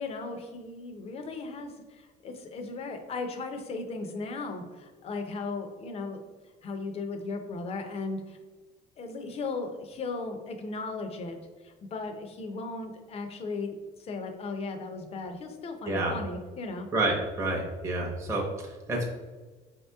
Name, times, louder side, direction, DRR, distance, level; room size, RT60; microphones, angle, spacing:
voice 1, 0.0-6.3 6.6-8.4 9.0-16.9, left 3 dB, 35° left, 5 dB, 0.6 m, -36 dB
voice 2, 16.9-18.5 18.9-19.1, right 2 dB, 15° right, -1 dB, 0.8 m, -28 dB
5.1 x 2.9 x 3.4 m, 1.4 s
cardioid pair, 135°, 17 cm